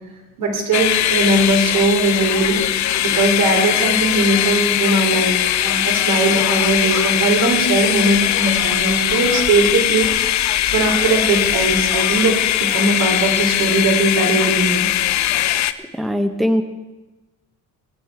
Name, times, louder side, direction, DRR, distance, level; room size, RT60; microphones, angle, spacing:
voice 1, 0.4-2.6 3.0-10.4 10.7-14.9, right 2 dB, 90° right, 2 dB, 3.1 m, -19 dB
sound 1, 0.7-15.7, left 12 dB, 60° left, 0.6 m, -20 dB
voice 2, 15.8-16.6, equal, ahead, 8 dB, 0.6 m, -20 dB
20.0 x 9.1 x 4.6 m, 1.1 s
cardioid pair, 145°, 32 cm